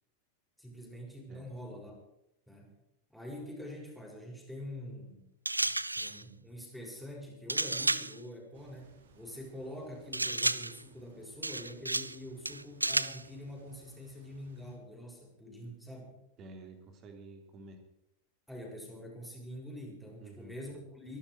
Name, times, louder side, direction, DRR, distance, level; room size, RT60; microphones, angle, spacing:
voice 1, 0.6-2.0 2.5-2.8 3.1-5.3 5.9-16.2 18.5-21.2, equal, ahead, -1 dB, 6.6 m, -45 dB
sound 1, 5.4-6.2 7.5-8.2 10.1-10.8 11.4-12.2 12.4-13.2, right 2 dB, 85° right, 0.5 m, -32 dB
sound 2, 8.5-14.8, right 3 dB, 60° right, 2.4 m, -62 dB
voice 2, 16.4-17.8 20.2-20.6, right 2 dB, 30° right, 5 dB, 3.5 m, -50 dB
23.5 x 12.0 x 4.8 m, 0.83 s
figure-of-eight pair, 90°, 0 cm